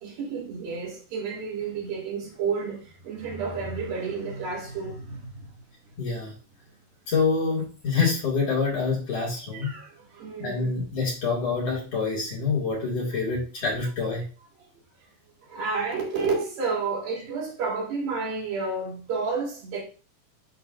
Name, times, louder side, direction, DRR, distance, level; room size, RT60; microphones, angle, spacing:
voice 1, 0.0-5.5 9.5-10.8 15.5-19.8, right 4 dB, 70° right, 4.1 m, -31 dB
voice 2, 6.0-6.3 7.1-9.7 10.4-14.2, left 4 dB, 45° left, 3.1 m, -26 dB
11.0 x 3.8 x 2.5 m
omnidirectional pair, 4.3 m